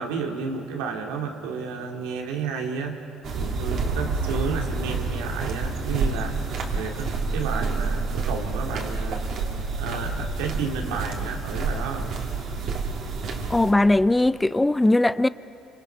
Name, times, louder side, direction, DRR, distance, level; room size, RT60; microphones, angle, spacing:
voice 1, 0.0-3.0 3.3-6.4 6.7-9.2 9.8-12.1 12.6-12.8, right 5 dB, 90° right, 2.3 m, -31 dB
sound 1, 3.2-13.7, right 3 dB, 65° right, 2.9 m, -28 dB
voice 2, 13.5-15.3, left 2 dB, 10° left, 0.5 m, -19 dB
28.5 x 25.5 x 5.7 m
supercardioid pair, 75°, 0 cm